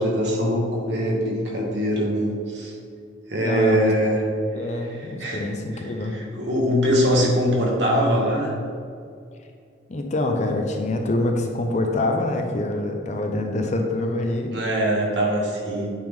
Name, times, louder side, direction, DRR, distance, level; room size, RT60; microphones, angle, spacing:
voice 1, 0.0-2.8 3.3-4.2 4.6-8.6 14.5-15.9, equal, 60° right, -2 dB, 1.4 m, -23 dB
voice 2, 3.4-3.9 4.5-6.1 9.9-14.6, left 2 dB, 35° left, 3 dB, 0.5 m, -25 dB
8.8 x 3.6 x 3.6 m, 2.3 s
head